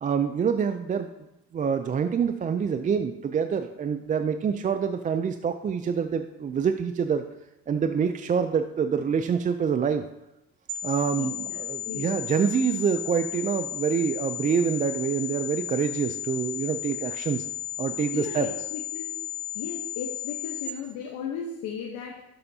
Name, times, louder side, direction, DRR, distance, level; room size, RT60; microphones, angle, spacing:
voice 1, 0.0-1.1 1.5-7.2 7.7-10.1 10.8-17.5 17.8-18.5, right 7 dB, 25° right, 8 dB, 0.4 m, -26 dB
sound 1, 10.7-20.7, left 11 dB, 60° right, 1.0 m, -34 dB
voice 2, 11.2-11.6 11.8-12.1 18.1-19.1 19.5-22.2, left 7 dB, 75° left, 2 dB, 1.0 m, -36 dB
12.0 x 6.8 x 2.7 m, 0.91 s
cardioid pair, 100°, 32 cm